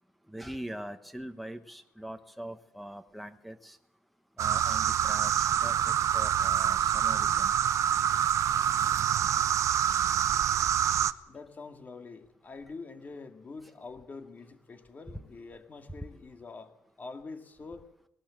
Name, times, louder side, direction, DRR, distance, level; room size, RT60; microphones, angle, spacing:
voice 1, 0.3-3.8 4.4-7.5, right 1 dB, ahead, 6 dB, 1.2 m, -42 dB
sound 1, 4.4-11.1, right 9 dB, 65° right, 0.8 m, -26 dB
voice 2, 11.3-16.7 17.0-17.8, left 4 dB, 30° left, 6 dB, 2.2 m, -45 dB
19.5 x 19.0 x 7.5 m, 0.78 s
cardioid pair, 150°, 6 cm